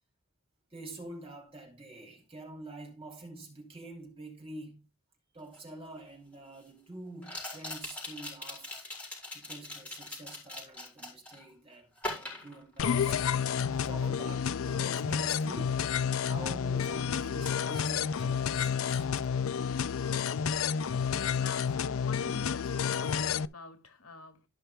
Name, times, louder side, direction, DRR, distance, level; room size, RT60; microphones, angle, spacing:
voice 1, 0.7-4.9 5.3-8.9 9.3-15.8 16.2-19.1, right 2 dB, 25° right, 2.8 m, -47 dB
Cachos y dados, 5.5-5.6 7.2-11.4 12.0-13.3 13.6-13.9, left 2 dB, 5° left, 4.5 m, -41 dB
sound 1, 12.8-23.5, left 7 dB, 70° left, 0.4 m, -30 dB
voice 2, 21.1-24.4, left 4 dB, 90° left, 2.0 m, -46 dB
12.5 x 5.6 x 3.4 m
head